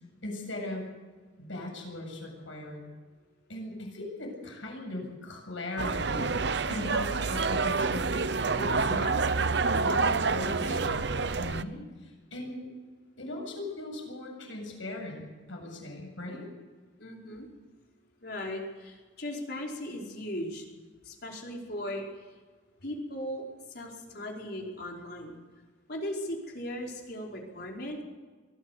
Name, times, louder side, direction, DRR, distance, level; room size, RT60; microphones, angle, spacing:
voice 1, 0.2-0.8 1.4-2.8 3.5-8.2 8.6-12.7 13.2-16.5, left 1 dB, 85° left, 1 dB, 7.6 m, -39 dB
sound 1, 5.8-11.6, right 4 dB, 60° right, 0.8 m, -28 dB
voice 2, 17.0-17.5 18.2-20.7 21.0-22.1 22.8-25.4 25.9-28.0, left 1 dB, 55° left, 0 dB, 5.0 m, -37 dB
24.0 x 16.0 x 8.3 m, 1.4 s
head